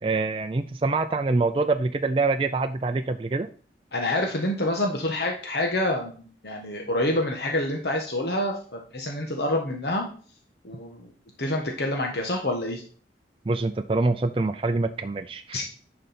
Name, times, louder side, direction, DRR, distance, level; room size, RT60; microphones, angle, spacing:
voice 1, 0.0-3.5 13.5-15.6, right 3 dB, 30° right, 6 dB, 0.4 m, -25 dB
voice 2, 3.9-10.1 10.6-11.1 11.4-12.8 15.5-15.6, left 1 dB, 70° left, 2 dB, 1.3 m, -27 dB
10.5 x 5.1 x 4.3 m, 0.42 s
head